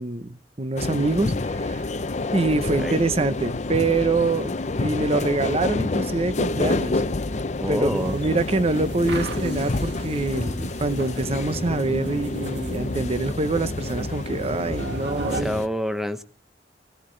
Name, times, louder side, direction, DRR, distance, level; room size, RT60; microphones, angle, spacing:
voice 1, 0.0-1.9 2.3-7.0 7.7-15.5, right 3 dB, 35° right, 0.8 m, -25 dB
sound 1, 0.8-15.7, left 2 dB, 40° left, 0.6 m, -28 dB
voice 2, 7.6-8.2 15.3-16.2, equal, ahead, 0.8 m, -27 dB
sound 2, 7.9-15.4, right 2 dB, 75° right, 1.6 m, -37 dB
17.0 x 17.0 x 3.2 m
head